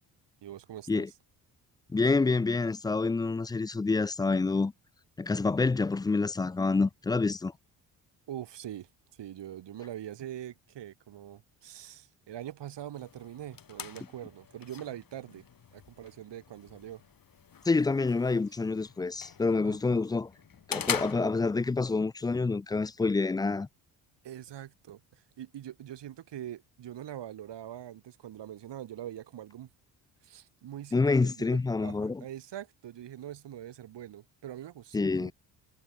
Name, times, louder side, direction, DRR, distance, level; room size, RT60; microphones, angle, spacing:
voice 1, 0.4-1.0 8.3-15.4 15.7-17.0 19.6-20.0 21.2-21.3 24.2-29.7 30.2-35.3, right 11 dB, 60° right, 3.4 m, -43 dB
voice 2, 1.9-4.7 5.2-7.5 17.7-20.3 20.7-23.7 30.9-32.2 34.9-35.3, left 3 dB, 10° left, 0.3 m, -27 dB
sound 1, 12.9-21.9, left 7 dB, 45° left, 3.1 m, -42 dB
hypercardioid pair, 50°, 49 cm